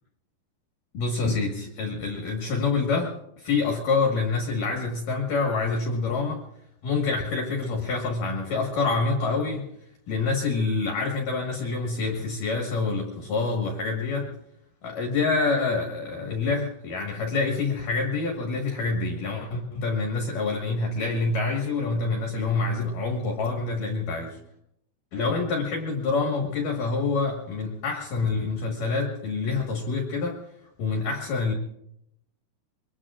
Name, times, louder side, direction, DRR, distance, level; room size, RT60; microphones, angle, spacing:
voice 1, 0.9-6.4 6.8-9.7 10.1-14.3 14.8-24.4 25.1-30.4 30.8-31.5, left 4 dB, 60° left, 1 dB, 2.4 m, -27 dB
25.0 x 22.0 x 2.4 m, 0.79 s
omnidirectional pair, 5.5 m